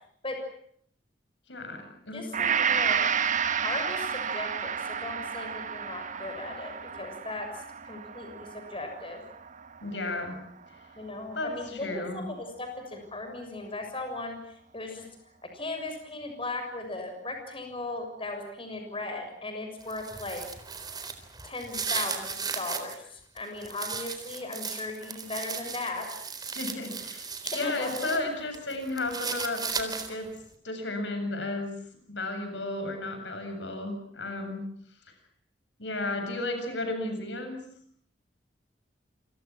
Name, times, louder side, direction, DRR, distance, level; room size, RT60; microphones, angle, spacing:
voice 1, 1.5-2.5 9.8-10.4 10.7-10.8 11.3-12.2 26.5-27.3 27.5-30.3 30.6-31.8 32.1-34.6 35.8-37.6, left 2 dB, 80° left, 6 dB, 7.8 m, -33 dB
voice 2, 2.1-3.1 3.6-7.5 7.9-9.2 11.0-14.4 14.7-15.1 15.4-20.4 21.4-26.1 27.4-28.2, left 2 dB, 30° left, 5 dB, 6.8 m, -37 dB
Gong, 2.3-10.6 11.1-11.2, right 7 dB, 45° right, 1.5 m, -31 dB
sound 1, 19.8-23.0 23.4-28.2 28.5-30.3, right 5 dB, 25° right, 4.0 m, -36 dB
29.0 x 26.5 x 6.1 m, 0.64 s
head